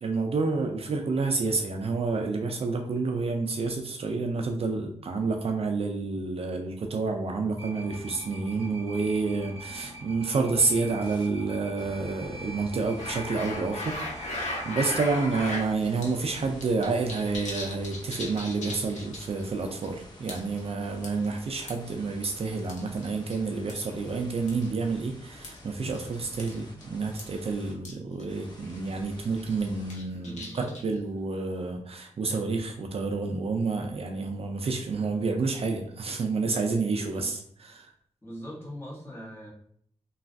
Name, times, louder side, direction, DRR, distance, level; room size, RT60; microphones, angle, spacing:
voice 1, 0.0-37.9, right 4 dB, 55° right, 3 dB, 0.4 m, -29 dB
sound 1, 7.6-15.5, right 1 dB, 20° right, 1.4 m, -43 dB
sound 2, 11.0-11.3 11.8-27.7 28.3-30.0, left 1 dB, 40° left, 0.8 m, -49 dB
sound 3, 13.0-15.7 16.0-16.1 16.4-19.4 19.7-19.9 20.3-20.6 21.0-21.9 22.7-23.4 23.7-23.9 24.5-24.7 25.4-25.6 25.9-26.1 26.4-26.6 26.8-26.9 27.2-27.3 27.8-27.9 28.2-28.3 28.6-28.9 29.4-31.0, left 1 dB, 80° left, 0.8 m, -36 dB
voice 2, 30.1-30.7 37.1-37.3 38.2-39.5, equal, 20° left, -6 dB, 1.4 m, -42 dB
3.2 x 2.3 x 2.5 m, 0.63 s
cardioid pair, 80°, 12 cm